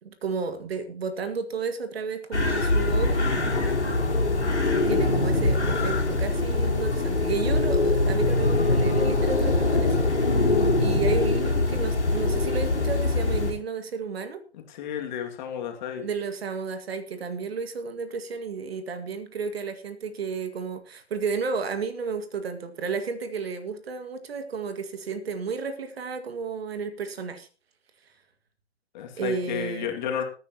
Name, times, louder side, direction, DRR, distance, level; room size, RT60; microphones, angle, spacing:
voice 1, 0.0-3.3 4.9-10.5 10.8-14.4 16.0-27.5 29.2-29.9, right 5 dB, 60° right, 9 dB, 1.9 m, -32 dB
sound 1, 2.3-13.5, left 2 dB, 85° left, 3.6 m, -23 dB
voice 2, 14.5-16.0 28.9-30.2, left 8 dB, 40° left, 3 dB, 2.3 m, -32 dB
21.0 x 9.5 x 3.0 m, 0.37 s
figure-of-eight pair, 130°, 34 cm